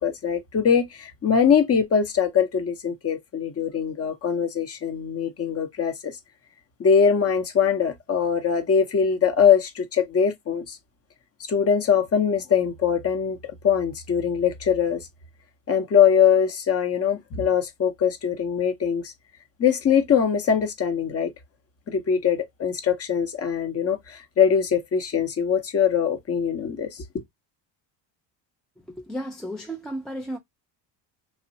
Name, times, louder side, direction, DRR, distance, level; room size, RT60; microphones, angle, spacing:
voice 1, 0.0-6.1 6.8-10.8 11.5-15.1 15.7-19.1 19.6-21.3 21.9-27.0, left 7 dB, 30° left, 0.7 m, -22 dB
voice 2, 29.1-30.4, right 1 dB, ahead, 0.3 m, -33 dB
2.8 x 2.1 x 2.6 m
cardioid pair, 100°, 45 cm